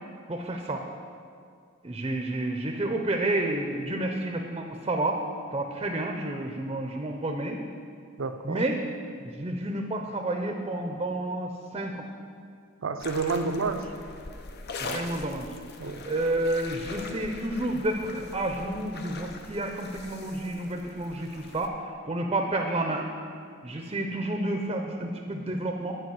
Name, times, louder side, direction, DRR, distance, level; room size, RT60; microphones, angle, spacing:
voice 1, 0.3-0.8 1.8-5.2 5.5-7.6 8.4-8.8 9.2-12.1 14.8-15.5 16.1-21.8 22.1-23.1 23.6-26.0, right 1 dB, 25° right, 3 dB, 0.6 m, -30 dB
voice 2, 8.2-8.6 12.8-13.9 14.8-15.1 15.8-16.1, right 4 dB, 75° right, 8 dB, 0.6 m, -30 dB
sound 1, 13.0-21.7, left 3 dB, 50° left, 0.7 m, -42 dB
9.9 x 5.0 x 7.8 m, 2.2 s
head